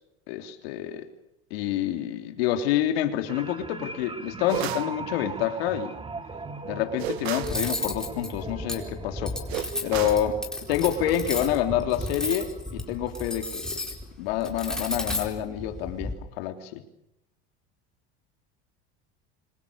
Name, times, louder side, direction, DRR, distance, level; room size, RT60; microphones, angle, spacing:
voice 1, 0.3-1.1 1.5-5.9 6.6-9.4 9.8-10.4 10.7-13.8 14.2-16.8, left 11 dB, 80° left, 6 dB, 3.3 m, -28 dB
sound 1, 3.3-14.0 14.4-14.6, right 3 dB, 15° right, 2.1 m, -39 dB
sound 2, 4.5-4.9 7.0-7.6 9.5-10.3, right 16 dB, 90° right, 0.9 m, -33 dB
Cutlery silverware, 7.4-16.1, left 1 dB, ahead, 4.5 m, -33 dB
26.0 x 26.0 x 6.9 m, 0.84 s
supercardioid pair, 120°, 30 cm